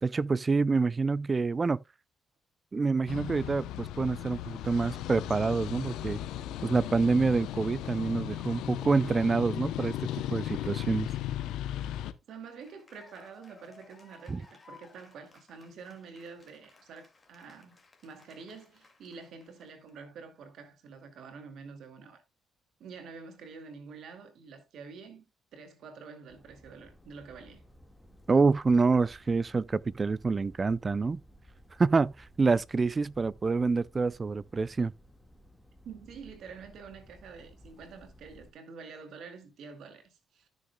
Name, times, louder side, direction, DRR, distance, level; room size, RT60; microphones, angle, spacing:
voice 1, 0.0-1.8 2.7-6.2 6.6-11.1 14.3-14.4 28.3-31.2 31.8-32.1 32.4-34.9, right 4 dB, 30° right, 0.4 m, -27 dB
sound 1, 3.1-12.1, left 12 dB, 90° left, 0.7 m, -36 dB
voice 2, 12.3-22.2 22.8-25.3 25.5-27.6 35.8-40.5, right 5 dB, 70° right, 2.2 m, -47 dB
Cheering / Applause, 12.4-19.9, left 3 dB, 25° left, 2.2 m, -59 dB
sound 2, 26.3-38.5, equal, 5° left, 1.7 m, -56 dB
14.5 x 6.5 x 2.2 m
cardioid pair, 90°, 0 cm